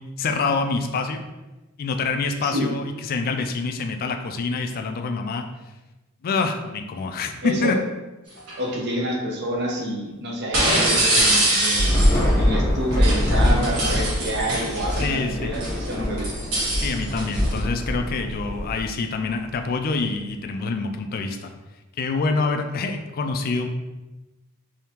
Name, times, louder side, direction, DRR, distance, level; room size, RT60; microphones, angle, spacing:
voice 1, 0.2-1.2 1.8-5.4 6.2-7.8 15.0-15.5 16.8-21.5 22.0-23.7, left 4 dB, 45° left, 6 dB, 0.3 m, -26 dB
voice 2, 7.4-7.8 8.6-12.0 12.4-16.3, equal, 55° right, 0 dB, 0.7 m, -28 dB
sound 1, 8.4-8.6 10.5-12.3 12.9-15.1 15.5-17.6, right 1 dB, 85° right, 1.1 m, -24 dB
Thunder / Rain, 11.7-19.3, equal, 15° left, 0.9 m, -23 dB
3.5 x 2.7 x 2.8 m, 1.1 s
head